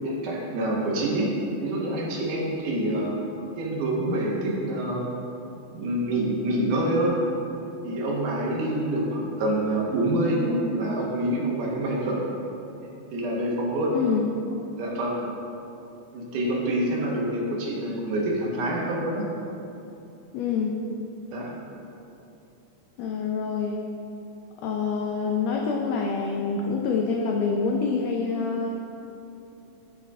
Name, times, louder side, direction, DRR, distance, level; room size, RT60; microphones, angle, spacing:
voice 1, 0.0-1.3 1.6-3.2 3.6-5.2 5.7-7.2 7.8-12.2 12.8-14.0 14.7-15.2 16.1-19.3 21.3-21.5, right 1 dB, 85° right, -3 dB, 2.7 m, -26 dB
voice 2, 13.9-14.3 20.3-20.8 23.0-23.8 24.6-28.7, left 5 dB, 85° left, 1 dB, 1.5 m, -26 dB
12.0 x 4.1 x 3.6 m, 2.8 s
omnidirectional pair, 3.5 m